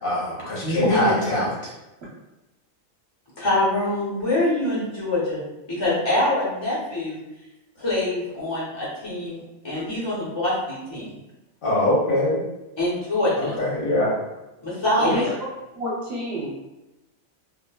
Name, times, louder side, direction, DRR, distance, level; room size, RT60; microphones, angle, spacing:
voice 1, 0.0-1.5 11.6-12.4 13.3-14.1, left 1 dB, 80° left, -6 dB, 1.4 m, -23 dB
voice 2, 0.6-1.1 3.4-5.4 5.8-7.2 7.8-11.1 12.8-13.5 14.6-15.3, left 1 dB, 30° left, -7 dB, 0.5 m, -24 dB
voice 3, 15.7-16.5, right 1 dB, 55° right, -7 dB, 1.1 m, -28 dB
3.6 x 2.0 x 2.2 m, 0.98 s
omnidirectional pair, 1.4 m